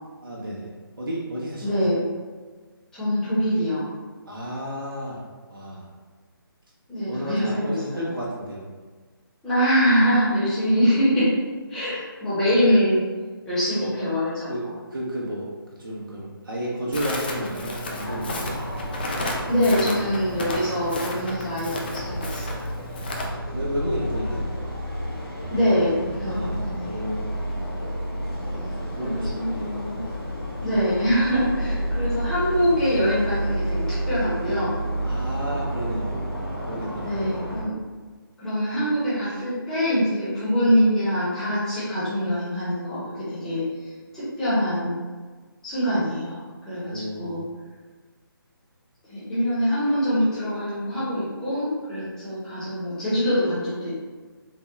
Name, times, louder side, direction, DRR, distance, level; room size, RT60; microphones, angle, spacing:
voice 1, 0.2-0.7 1.0-1.8 4.3-5.9 7.0-8.6 13.8-13.9 14.5-15.5 15.8-18.6 23.5-24.5 26.3-27.3 28.4-29.7 31.4-31.7 35.0-36.2 36.6-37.4 46.8-47.4, equal, 65° right, -4 dB, 0.7 m, -32 dB
voice 2, 1.6-2.0 2.9-3.9 6.9-8.1 9.4-11.3 11.7-13.0 13.4-14.7 19.5-22.6 25.5-26.9 29.0-30.0 30.6-34.7 37.0-37.8 38.4-45.0 45.6-47.4 49.1-53.9, equal, 5° left, -12 dB, 0.8 m, -24 dB
Crackle, 16.9-23.3, left 1 dB, 25° left, 0.3 m, -33 dB
sound 1, 17.9-37.6, equal, 85° left, 1.1 m, -31 dB
3.7 x 2.1 x 3.0 m, 1.4 s
figure-of-eight pair, 145°, 12 cm